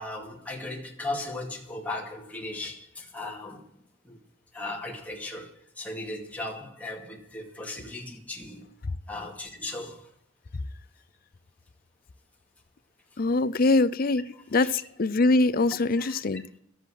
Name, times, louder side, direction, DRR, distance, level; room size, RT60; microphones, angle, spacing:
voice 1, 0.0-3.6 4.0-4.2 4.5-8.7 9.1-10.1 14.4-14.7 16.0-16.6, left 2 dB, 10° left, 2.2 m, -37 dB
voice 2, 13.2-14.2 14.5-14.7 15.0-16.4, left 2 dB, 45° left, 0.5 m, -22 dB
12.5 x 8.0 x 6.3 m
head